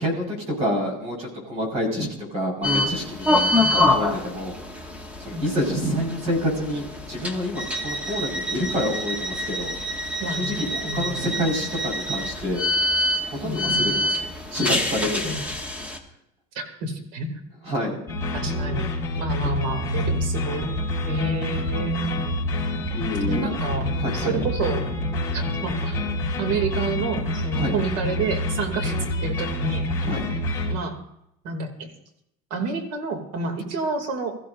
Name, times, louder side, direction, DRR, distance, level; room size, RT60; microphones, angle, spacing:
voice 1, 0.0-4.5 5.2-9.7 10.4-12.6 13.2-15.4 17.6-18.0 22.9-23.5 24.0-24.3 27.5-27.7 30.0-30.3, equal, 40° right, 0 dB, 4.9 m, -28 dB
sound 1, 2.6-16.0, left 1 dB, 10° right, 1.1 m, -26 dB
voice 2, 10.2-11.3 13.4-14.0 15.2-15.5 16.5-17.4 18.3-18.9 19.2-20.7 21.0-22.2 23.3-24.9 25.3-26.1 26.4-30.0 30.7-31.0 31.4-31.9 32.5-34.4, right 3 dB, 80° right, 5 dB, 2.6 m, -29 dB
sound 2, 18.1-30.7, left 1 dB, 15° left, 3.8 m, -27 dB
23.0 x 14.5 x 2.6 m, 0.79 s
cardioid pair, 165°, 17 cm